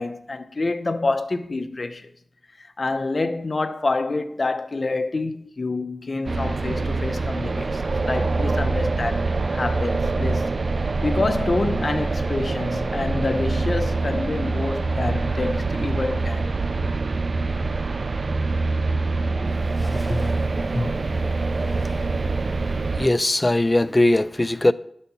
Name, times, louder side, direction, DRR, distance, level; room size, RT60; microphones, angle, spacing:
voice 1, 0.0-2.1 2.6-10.5 11.0-16.4, left 3 dB, 50° left, 0.8 m, -27 dB
sound 1, 6.3-23.1, right 3 dB, 55° right, 0.4 m, -25 dB
voice 2, 19.4-20.3 20.7-21.1 21.6-22.0 22.7-24.7, left 1 dB, 20° left, 0.4 m, -22 dB
10.5 x 4.3 x 6.9 m
wide cardioid pair, 80°, 0 cm